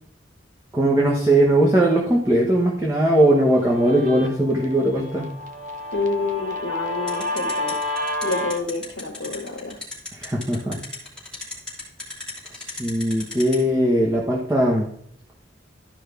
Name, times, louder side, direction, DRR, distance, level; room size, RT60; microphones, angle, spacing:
voice 1, 0.7-5.3 10.1-10.8 12.5-14.9, right 1 dB, 15° right, -3 dB, 1.2 m, -19 dB
Guitar, 3.1-8.6, left 2 dB, 45° right, 1.0 m, -30 dB
voice 2, 5.9-7.8 8.2-9.8, left 3 dB, 75° left, -2 dB, 1.4 m, -28 dB
sound 1, 7.1-13.6, left 3 dB, 5° left, 3.0 m, -33 dB
12.5 x 5.3 x 3.5 m, 0.69 s
head